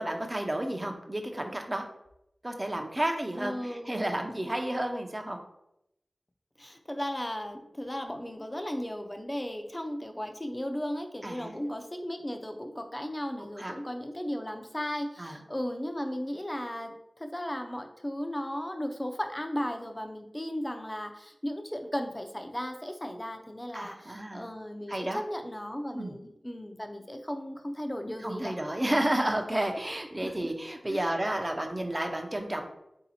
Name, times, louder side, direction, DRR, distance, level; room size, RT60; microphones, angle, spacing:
voice 1, 0.0-1.8 2.4-5.4 11.2-11.6 13.6-13.7 15.2-15.4 23.7-24.5 24.9-25.2 25.9-26.1 28.2-32.6, right 1 dB, 30° right, 4 dB, 0.7 m, -31 dB
voice 2, 3.4-4.1 6.6-28.6 30.2-30.3 30.9-31.1, equal, 25° left, 5 dB, 0.6 m, -36 dB
3.8 x 2.8 x 4.2 m, 0.84 s
cardioid pair, 40°, 0 cm